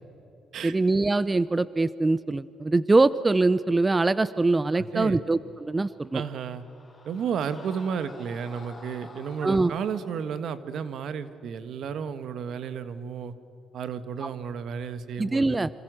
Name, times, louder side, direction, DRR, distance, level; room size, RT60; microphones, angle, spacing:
voice 1, 0.6-6.2 9.4-9.7 14.2-14.3 15.2-15.7, right 3 dB, 20° right, 16 dB, 0.6 m, -23 dB
voice 2, 4.7-5.2 6.1-6.6 7.0-13.3 13.7-15.6, right 7 dB, 70° right, 11 dB, 1.6 m, -32 dB
Screaming, 5.6-10.1, left 2 dB, 25° left, 7.1 m, -49 dB
28.0 x 26.0 x 6.4 m, 2.8 s
cardioid pair, 90°, 0 cm